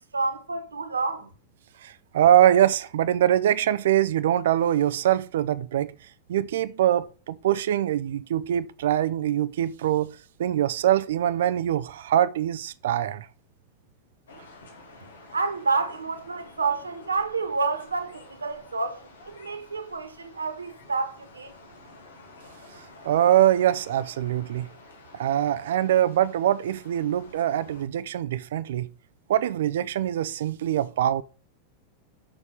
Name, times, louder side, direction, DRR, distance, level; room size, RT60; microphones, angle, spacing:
voice 1, 0.1-1.3 15.3-21.5, right 4 dB, 75° right, 1.5 m, -29 dB
voice 2, 1.8-5.9 6.3-13.3 23.0-24.7 25.1-28.9 29.3-31.2, right 11 dB, 60° right, 0.5 m, -23 dB
sound 1, 14.3-27.8, left 2 dB, 65° left, 2.4 m, -50 dB
6.8 x 6.7 x 7.3 m
figure-of-eight pair, 90°, 0 cm